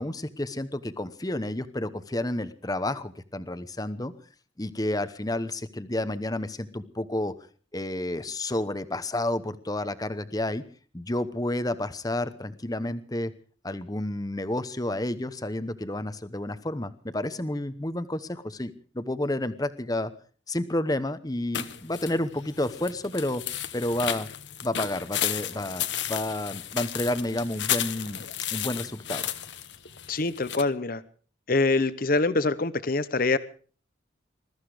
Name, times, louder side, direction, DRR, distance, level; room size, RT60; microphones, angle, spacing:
voice 1, 0.0-4.1 4.6-7.3 7.7-10.6 10.9-13.3 13.6-20.1 20.5-23.4 23.7-24.3 24.6-25.8 26.1-28.2 28.5-29.3, left 1 dB, 20° left, 13 dB, 0.9 m, -30 dB
sound 1, 21.5-30.6, left 10 dB, 65° left, 1.2 m, -33 dB
voice 2, 30.1-31.0 31.5-33.4, left 3 dB, 45° left, 15 dB, 0.8 m, -24 dB
21.0 x 13.5 x 4.9 m, 0.41 s
head